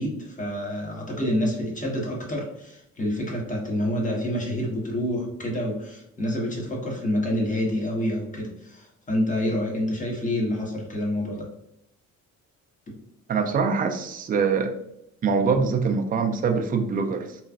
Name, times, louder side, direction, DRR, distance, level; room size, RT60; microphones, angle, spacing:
voice 1, 0.0-11.5, left 1 dB, 25° left, -2 dB, 1.1 m, -28 dB
voice 2, 13.3-14.7 15.2-17.4, right 5 dB, 30° right, 5 dB, 0.4 m, -24 dB
3.1 x 2.3 x 2.4 m, 0.80 s
cardioid pair, 90°, 30 cm